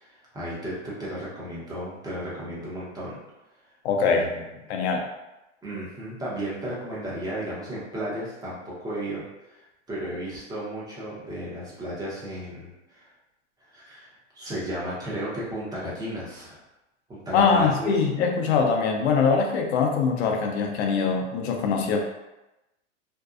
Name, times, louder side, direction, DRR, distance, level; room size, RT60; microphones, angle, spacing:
voice 1, 0.0-3.2 4.0-4.6 5.6-9.2 9.5-13.1 13.7-14.1 14.3-16.6 17.1-17.9, right 1 dB, 10° right, -7 dB, 0.7 m, -34 dB
voice 2, 3.8-4.3 4.7-5.1 17.3-22.0, left 5 dB, 60° left, 2 dB, 0.6 m, -23 dB
2.6 x 2.2 x 2.4 m, 0.97 s
hypercardioid pair, 120°, 37 cm